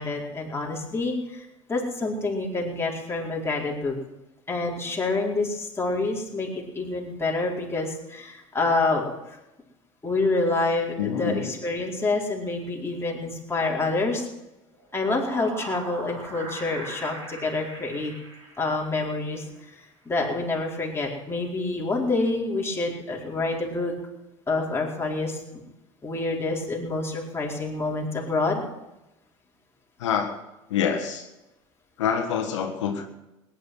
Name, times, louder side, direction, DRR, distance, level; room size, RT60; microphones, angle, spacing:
voice 1, 0.0-4.0 4.5-9.0 10.0-14.3 14.9-18.1 18.6-19.4 20.0-23.9 24.5-25.6 26.0-28.6, left 3 dB, 15° left, -2 dB, 4.5 m, -27 dB
voice 2, 11.0-11.5 30.0-30.4 30.7-31.3 32.0-33.0, left 7 dB, 85° left, 3 dB, 1.6 m, -26 dB
sound 1, 14.7-19.2, right 2 dB, 85° right, 5.8 m, -40 dB
18.0 x 10.5 x 6.3 m, 0.95 s
hypercardioid pair, 85°, 15 cm